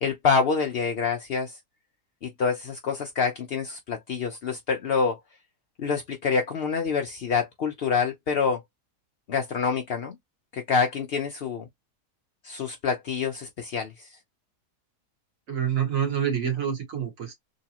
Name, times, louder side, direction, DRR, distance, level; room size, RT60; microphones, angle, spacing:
voice 1, 0.0-1.5 2.2-5.2 5.8-8.6 9.3-10.2 10.5-11.7 12.4-14.1, left 5 dB, 75° left, 0.5 m, -26 dB
voice 2, 15.5-17.3, right 8 dB, 55° right, 1.9 m, -27 dB
3.8 x 2.8 x 2.9 m
omnidirectional pair, 1.8 m